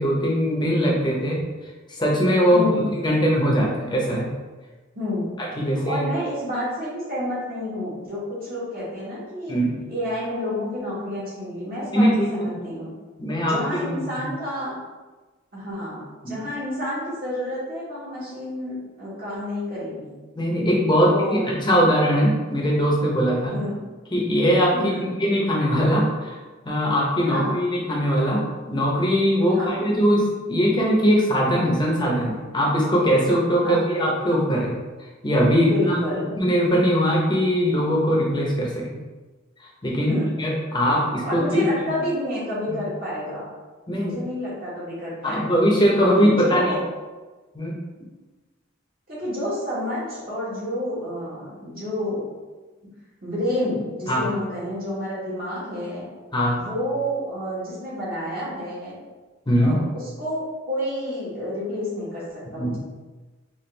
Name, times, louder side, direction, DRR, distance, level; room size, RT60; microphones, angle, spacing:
voice 1, 0.0-1.4 1.9-4.3 5.4-6.0 9.5-9.8 11.9-12.5 13.2-13.9 16.2-16.4 20.4-23.6 24.1-26.4 26.6-28.4 28.7-34.7 35.2-38.8 39.8-41.9 43.9-44.1 45.2-46.8 47.5-47.8 54.1-54.3 56.3-56.6 59.5-59.8 62.6-62.8, equal, 20° left, -3 dB, 0.7 m, -21 dB
voice 2, 2.5-2.8 4.9-5.3 5.7-9.6 9.9-12.9 13.4-14.8 15.5-20.1 21.0-21.7 23.5-23.7 24.7-25.1 27.3-27.6 29.5-29.8 33.6-33.8 35.6-36.3 40.0-40.4 41.2-43.5 43.9-45.6 46.2-46.8 49.1-52.2 53.2-56.1 56.5-58.9 59.6-60.4 60.7-62.8, left 1 dB, 45° right, -8 dB, 1.4 m, -29 dB
4.2 x 2.5 x 3.2 m, 1.3 s
head